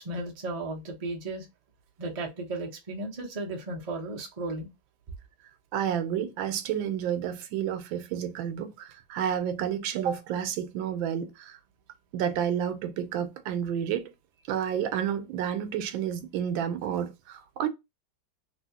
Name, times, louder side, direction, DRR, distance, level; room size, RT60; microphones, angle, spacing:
voice 1, 0.0-1.4 2.0-4.7, right 2 dB, 65° right, 0.3 m, -35 dB
voice 2, 5.7-11.6 12.1-14.1 14.5-17.7, right 9 dB, 85° right, 1.4 m, -30 dB
3.0 x 2.9 x 2.7 m
omnidirectional pair, 2.1 m